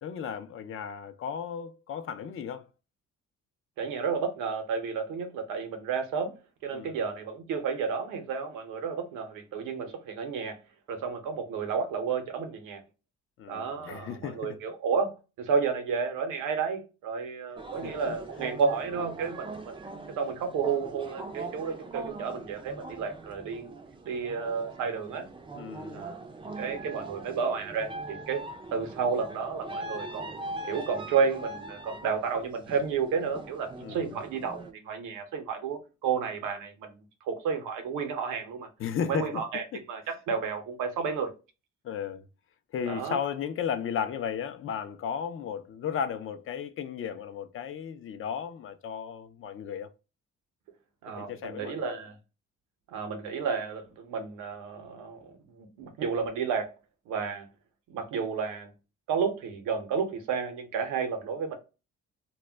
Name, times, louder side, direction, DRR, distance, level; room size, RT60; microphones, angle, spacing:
voice 1, 0.0-2.7 6.7-7.0 13.4-14.6 17.8-18.2 25.6-26.0 33.8-34.1 38.8-39.4 39.7-39.8 41.8-42.2 42.7-49.9 51.2-52.0, left 8 dB, 45° left, 0.4 m, -35 dB
voice 2, 3.8-6.3 6.6-10.6 10.9-12.8 13.5-19.8 20.2-23.7 24.0-25.3 25.9-26.2 26.6-28.4 28.7-30.3 30.7-37.0 37.2-38.7 39.0-41.3 42.8-43.2 51.0-52.1 52.9-56.7 57.1-57.5 57.9-58.7 59.1-61.5, right 5 dB, 90° right, 0.7 m, -31 dB
sound 1, 17.6-34.7, right 2 dB, 15° right, 0.4 m, -42 dB
2.2 x 2.1 x 3.3 m
cardioid pair, 90°, 30 cm